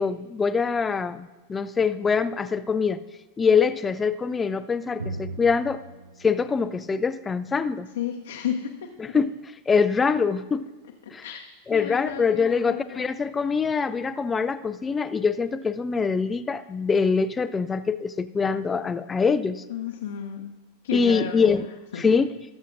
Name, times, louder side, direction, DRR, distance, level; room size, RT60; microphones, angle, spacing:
voice 1, 0.0-3.0 3.4-5.8 6.2-7.9 9.0-9.3 9.7-10.7 11.1-11.2 11.7-19.6 20.9-21.7 22.0-22.3, left 5 dB, 15° left, 12 dB, 0.4 m, -24 dB
Drum, 5.0-8.5, right 2 dB, 80° right, 0.5 m, -40 dB
voice 2, 8.0-8.7 9.1-9.2 11.0-13.1 19.7-20.5 20.8-21.7 21.9-22.0, left 9 dB, 60° left, 1 dB, 0.8 m, -32 dB
18.5 x 7.3 x 2.5 m, 1.2 s
figure-of-eight pair, 90°, 0 cm